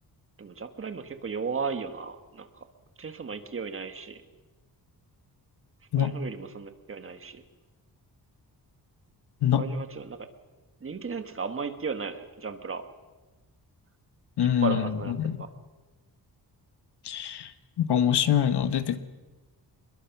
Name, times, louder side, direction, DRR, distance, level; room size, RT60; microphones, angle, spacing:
voice 1, 0.4-2.6 3.0-4.2 6.0-7.4 9.6-10.2 10.8-12.8 14.4-15.1 15.4-15.5, right 5 dB, 35° right, 1.6 m, -35 dB
voice 2, 14.4-15.4 17.0-17.5 17.8-19.0, left 9 dB, 80° left, 1.4 m, -24 dB
27.5 x 21.5 x 6.0 m
wide cardioid pair, 170°, 39 cm